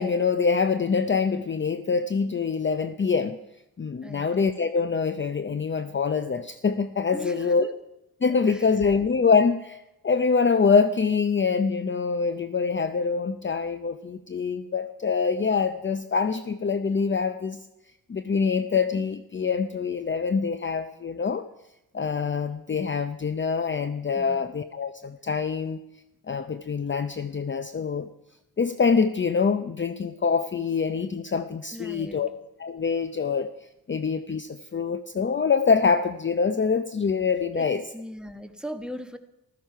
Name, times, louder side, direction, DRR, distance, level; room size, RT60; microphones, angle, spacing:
voice 1, 0.0-3.4 3.8-7.7 8.2-17.6 18.1-21.4 21.9-25.8 26.3-28.1 28.6-32.3 32.6-33.5 33.9-37.8, left 5 dB, 30° left, 10 dB, 0.6 m, -25 dB
voice 2, 7.1-7.7 8.5-8.7 24.2-24.6 31.7-32.3 37.5-39.2, equal, ahead, 6 dB, 1.3 m, -39 dB
15.0 x 14.0 x 5.6 m, 0.92 s
wide cardioid pair, 110°, 37 cm